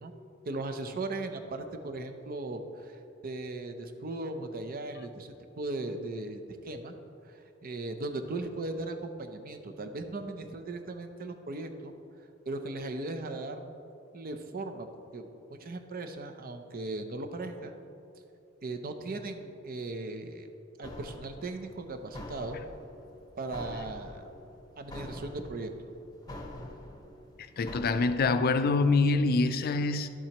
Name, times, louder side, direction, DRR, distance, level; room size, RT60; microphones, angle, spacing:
voice 1, 0.5-3.0 3.2-6.9 7.3-11.9 12.5-13.7 14.1-14.9 15.1-17.7 18.6-20.5 20.8-22.6 23.4-24.3 24.8-25.9, right 2 dB, 45° right, 7 dB, 0.6 m, -38 dB
sound 1, 20.8-28.4, left 1 dB, 20° left, 0.9 m, -46 dB
voice 2, 27.6-30.1, left 3 dB, 45° left, 10 dB, 0.4 m, -25 dB
12.0 x 7.3 x 2.9 m, 2.7 s
head